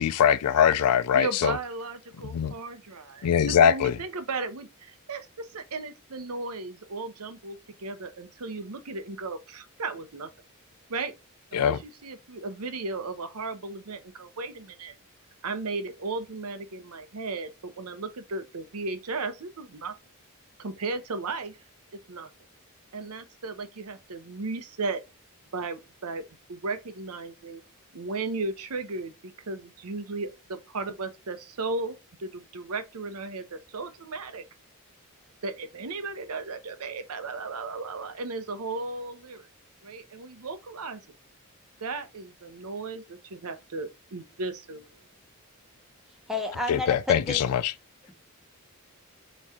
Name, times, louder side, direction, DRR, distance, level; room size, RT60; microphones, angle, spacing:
voice 1, 0.0-1.6 2.3-2.5 3.2-4.0 11.5-11.8 46.7-47.7, left 8 dB, 90° left, 0.4 m, -22 dB
voice 2, 1.1-10.3 10.9-11.1 11.5-14.9 15.4-19.9 20.6-21.6 22.1-22.3 22.9-25.0 25.5-27.6 27.9-29.1 29.5-34.4 35.4-39.5 39.8-41.0 41.8-44.8, right 3 dB, 75° right, 0.8 m, -35 dB
voice 3, 46.3-47.4, left 2 dB, ahead, 0.9 m, -30 dB
4.2 x 3.1 x 3.6 m
head